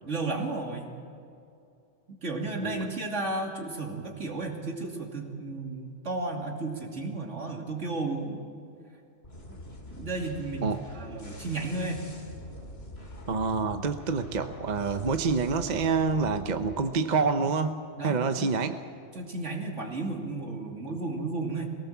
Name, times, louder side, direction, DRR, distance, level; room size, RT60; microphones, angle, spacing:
voice 1, 0.0-0.9 2.1-8.4 9.9-12.1 18.0-18.5 19.1-21.8, right 3 dB, 75° right, 1 dB, 3.0 m, -33 dB
sound 1, 9.2-16.9, left 1 dB, 55° left, 2.9 m, -44 dB
voice 2, 13.3-18.8, right 4 dB, 40° right, 8 dB, 0.9 m, -27 dB
23.0 x 17.5 x 7.3 m, 2.6 s
omnidirectional pair, 1.2 m